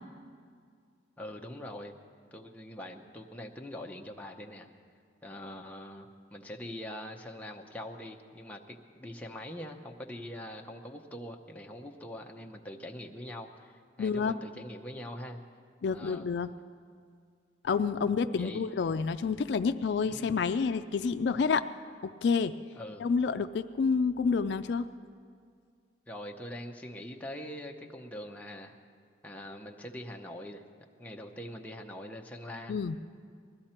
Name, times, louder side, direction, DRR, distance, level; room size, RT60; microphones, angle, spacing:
voice 1, 1.2-1.9 2.3-4.7 5.2-13.7 14.0-15.4 15.9-16.3 18.3-18.7 20.1-20.3 22.8-23.1 26.1-28.8 29.2-30.6 31.0-32.7, left 1 dB, 10° left, 1 dB, 0.8 m, -43 dB
voice 2, 14.0-14.3 15.8-16.5 17.6-21.6 22.0-22.5 23.0-24.9 32.7-33.0, left 5 dB, 65° left, 10 dB, 0.3 m, -29 dB
20.5 x 13.0 x 4.4 m, 2.1 s
head